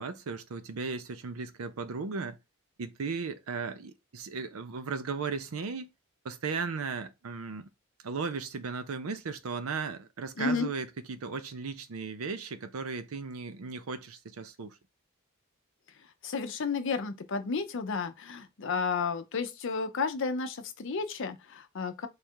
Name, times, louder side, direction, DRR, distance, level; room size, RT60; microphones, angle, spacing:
voice 1, 0.0-2.4 2.8-5.9 6.2-7.7 8.0-14.8, right 4 dB, 80° right, 0.6 m, -36 dB
voice 2, 10.4-10.7 16.2-22.1, left 4 dB, 60° left, 0.6 m, -32 dB
3.3 x 2.4 x 4.3 m
head